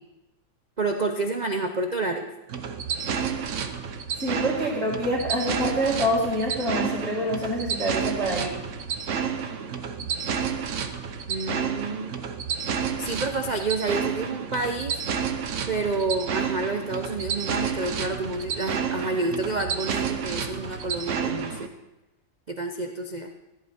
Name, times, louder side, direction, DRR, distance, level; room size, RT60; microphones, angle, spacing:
voice 1, 0.8-2.3 11.3-12.2 13.0-15.0 15.7-21.7 22.5-23.3, right 3 dB, 80° right, 4 dB, 0.4 m, -29 dB
sound 1, 2.5-21.7, right 7 dB, 55° right, 0.9 m, -30 dB
voice 2, 4.2-8.5, equal, 35° right, -7 dB, 2.6 m, -26 dB
14.0 x 11.5 x 4.3 m, 0.98 s
omnidirectional pair, 2.0 m